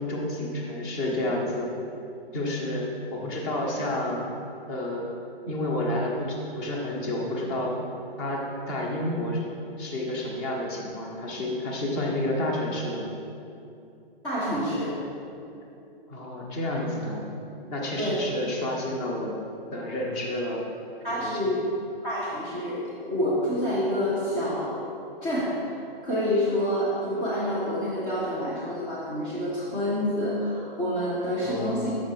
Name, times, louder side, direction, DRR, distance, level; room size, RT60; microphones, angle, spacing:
voice 1, 0.0-1.7 2.3-2.8 3.1-4.3 4.7-5.1 5.5-7.8 8.2-9.4 9.8-13.2 16.1-17.3 17.7-19.4 19.7-20.6 21.1-21.4 31.5-31.8, left 1 dB, 25° left, -1 dB, 0.9 m, -30 dB
voice 2, 14.2-14.9 18.0-18.2 21.0-21.6 22.0-22.8 23.1-24.8 25.2-31.9, equal, 10° left, -10 dB, 0.3 m, -27 dB
6.2 x 4.4 x 4.5 m, 2.7 s
hypercardioid pair, 145°, 30 cm